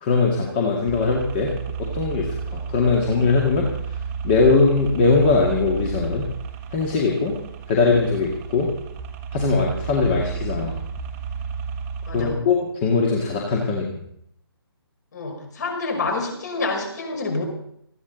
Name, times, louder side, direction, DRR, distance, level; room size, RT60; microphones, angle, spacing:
voice 1, 0.0-1.5 1.8-3.7 4.2-6.3 6.7-7.4 7.7-8.7 9.3-10.8 12.1-14.0, left 4 dB, 25° left, -1 dB, 2.1 m, -20 dB
sound 1, 0.9-12.3, right 6 dB, 15° right, 1.4 m, -32 dB
voice 2, 12.1-12.4 15.1-17.4, left 3 dB, 45° left, 2 dB, 5.5 m, -28 dB
19.5 x 15.0 x 4.0 m, 0.71 s
figure-of-eight pair, 140°, 13 cm